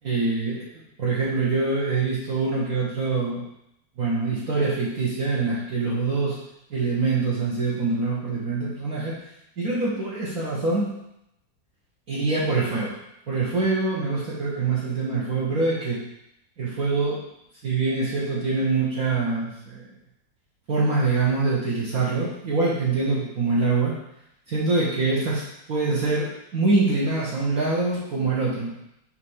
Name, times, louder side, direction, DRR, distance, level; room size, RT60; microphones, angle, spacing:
voice 1, 0.0-3.4 4.0-6.4 6.7-9.1 9.6-10.9 12.1-12.9 13.3-16.0 16.6-17.2 17.6-19.9 20.7-23.9 24.5-25.4 25.7-28.7, right 3 dB, 55° right, -7 dB, 1.6 m, -24 dB
5.8 x 3.3 x 5.5 m, 0.80 s
omnidirectional pair, 2.0 m